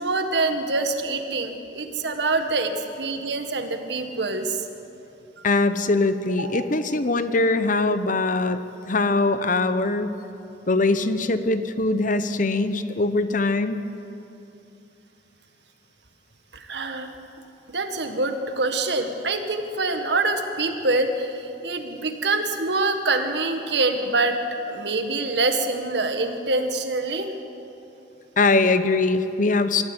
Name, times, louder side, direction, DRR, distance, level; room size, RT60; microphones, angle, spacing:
voice 1, 0.0-4.7 5.4-5.5 6.4-6.6 16.5-17.2 17.7-24.4 24.7-27.3, right 3 dB, 65° right, 6 dB, 1.8 m, -25 dB
voice 2, 5.4-8.6 8.8-10.1 10.7-13.8 28.4-29.8, left 3 dB, 45° left, 11 dB, 0.9 m, -22 dB
24.5 x 13.5 x 9.0 m, 2.7 s
head